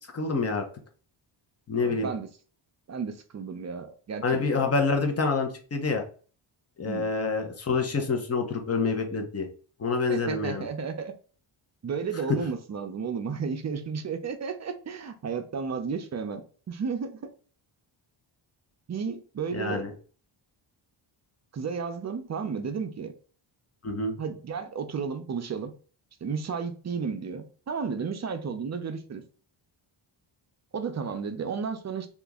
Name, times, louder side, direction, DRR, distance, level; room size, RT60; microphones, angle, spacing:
voice 1, 0.1-0.6 1.7-2.1 4.2-6.0 6.8-9.5 9.8-10.7 12.3-12.4 19.5-19.9 23.8-24.2, left 4 dB, 30° left, 5 dB, 0.7 m, -27 dB
voice 2, 1.8-2.3 2.9-4.7 6.9-7.1 10.1-11.1 11.8-16.4 16.7-17.3 18.9-19.8 21.5-23.1 24.2-25.7 26.2-29.2 30.7-32.1, right 5 dB, 35° right, 7 dB, 0.5 m, -33 dB
2.9 x 2.5 x 3.5 m, 0.39 s
wide cardioid pair, 115°, 48 cm